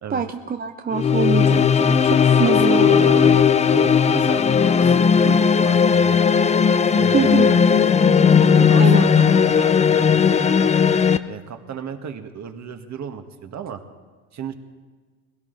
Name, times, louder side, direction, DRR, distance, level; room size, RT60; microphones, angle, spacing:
voice 1, 0.1-3.1 7.1-7.5 8.8-9.0, right 6 dB, 20° right, 6 dB, 0.7 m, -24 dB
sound 1, 0.9-11.2, left 6 dB, 15° left, 0.4 m, -16 dB
voice 2, 2.3-6.2 6.9-7.6 8.5-10.7 11.3-13.8 14.3-14.5, right 7 dB, 40° right, 6 dB, 1.7 m, -33 dB
21.0 x 17.0 x 4.0 m, 1.5 s
supercardioid pair, 90°, 44 cm